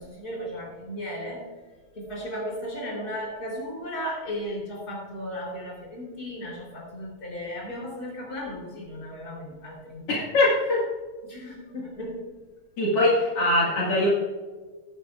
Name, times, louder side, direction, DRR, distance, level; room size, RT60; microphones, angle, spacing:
voice 1, 0.0-1.5 1.9-10.2 11.2-12.2, equal, 20° left, -3 dB, 3.2 m, -35 dB
voice 2, 10.3-10.8 12.8-14.1, left 1 dB, 60° left, -6 dB, 1.6 m, -21 dB
15.0 x 10.0 x 2.4 m, 1.4 s
omnidirectional pair, 5.5 m